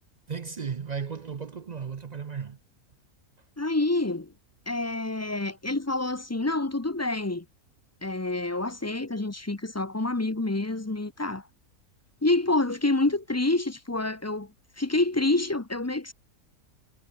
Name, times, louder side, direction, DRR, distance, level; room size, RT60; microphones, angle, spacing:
voice 1, 0.3-2.6, right 6 dB, 45° right, 0.5 m, -35 dB
voice 2, 3.6-4.3 4.7-7.4 8.0-11.4 12.2-14.5 14.8-16.1, left 2 dB, 15° left, 0.6 m, -27 dB
omnidirectional pair, 1.6 m